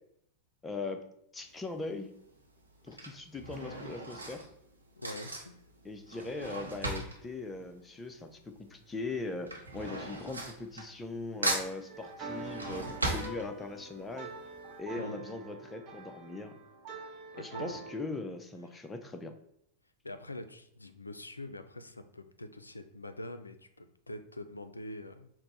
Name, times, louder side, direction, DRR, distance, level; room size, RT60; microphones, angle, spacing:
voice 1, 0.6-1.1 1.3-2.1 2.8-4.4 5.8-14.3 14.8-16.5 17.3-19.3, left 3 dB, 15° left, 6 dB, 0.5 m, -40 dB
Drawer open or close / Cutlery silverware, 1.4-1.8 2.6-8.5 8.8-11.2 11.4-14.0 14.4-14.5 14.7-14.8, right 2 dB, 80° right, 0.7 m, -38 dB
voice 2, 5.0-5.6 15.0-15.3 17.4-17.8 20.0-25.3, left 1 dB, 80° left, 9 dB, 0.3 m, -44 dB
sound 1, 11.9-18.0, right 2 dB, 35° right, 0.9 m, -45 dB
4.2 x 2.0 x 4.0 m, 0.73 s
figure-of-eight pair, 90°, 0 cm